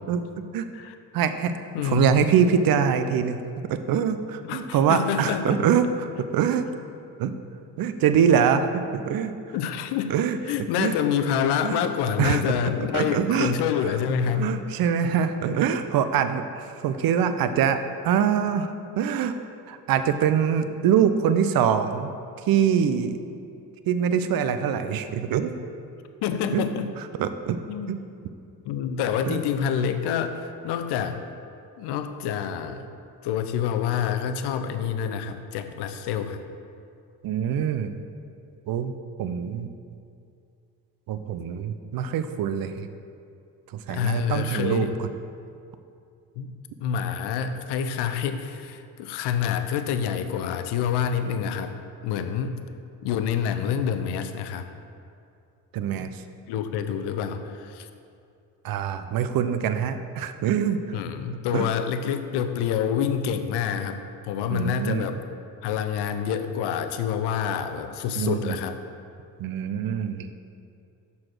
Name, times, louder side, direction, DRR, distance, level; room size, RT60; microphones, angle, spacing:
voice 1, 1.1-3.4 3.7-6.7 7.2-7.3 7.8-9.3 10.1-10.4 10.8-10.9 11.6-11.8 12.2-13.5 14.4-19.4 19.7-22.1 22.5-23.2 23.9-25.5 26.5-26.7 27.2-27.6 27.9-28.0 29.3-29.4 37.2-37.9 38.7-39.7 41.1-42.9 43.9-44.9 55.7-56.1 58.6-60.8 61.5-61.7 64.5-65.0 68.1-68.6 69.4-70.3, right 8 dB, 60° right, 10 dB, 0.6 m, -24 dB
voice 2, 1.7-2.2 4.5-5.7 9.5-10.2 10.5-14.5 26.2-26.9 27.7-28.0 28.7-31.2 31.8-32.9 33.2-36.4 43.9-44.9 46.4-46.5 46.8-51.7 52.0-52.6 53.0-54.7 56.5-57.9 60.9-65.2 65.6-68.8, left 8 dB, 70° left, 9 dB, 0.6 m, -27 dB
6.5 x 4.2 x 6.1 m, 2.5 s
supercardioid pair, 60°, 41 cm